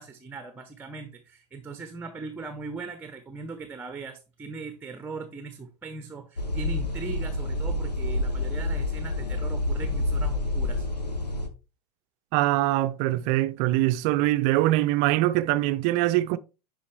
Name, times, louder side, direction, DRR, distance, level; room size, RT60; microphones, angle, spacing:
voice 1, 0.0-10.9, right 4 dB, 10° right, 0.8 m, -39 dB
sound 1, 6.4-11.5, left 2 dB, 90° left, 0.9 m, -28 dB
voice 2, 12.3-16.4, right 16 dB, 40° right, 0.5 m, -23 dB
11.0 x 4.0 x 3.2 m
figure-of-eight pair, 90°, 20 cm